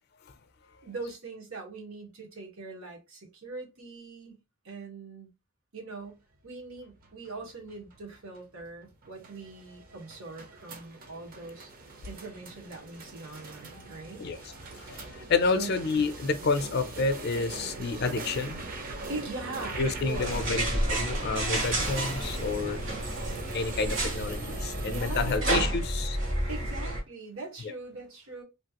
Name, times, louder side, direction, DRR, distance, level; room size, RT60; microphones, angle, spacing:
voice 1, 0.8-4.4 4.6-5.3 5.7-11.7 12.0-14.2 15.5-15.7 19.1-20.4 24.8-25.5 26.5-28.4, right 3 dB, 85° right, 1.3 m, -41 dB
sound 1, 6.8-25.4, right 2 dB, 45° right, 0.6 m, -41 dB
voice 2, 14.8-18.7 19.8-22.8 23.5-26.2 27.6-27.7, left 4 dB, 50° left, 0.5 m, -29 dB
sound 2, 20.1-27.0, right 1 dB, 60° right, 1.6 m, -30 dB
3.1 x 2.4 x 2.9 m
head